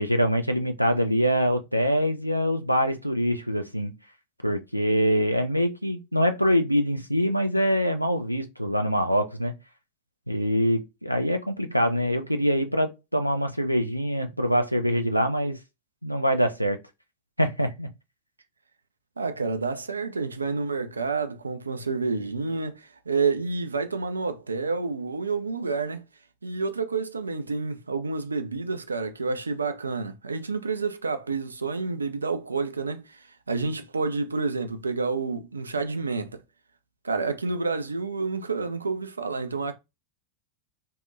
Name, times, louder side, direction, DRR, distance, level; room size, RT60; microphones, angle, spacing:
voice 1, 0.0-3.9 4.4-9.5 10.3-15.6 16.0-16.8 17.4-17.9, equal, 90° left, 0.4 m, -24 dB
voice 2, 19.2-26.0 26.4-36.4 37.0-39.7, right 4 dB, 75° right, 0.3 m, -29 dB
2.6 x 2.1 x 2.4 m
figure-of-eight pair, 90°, 0 cm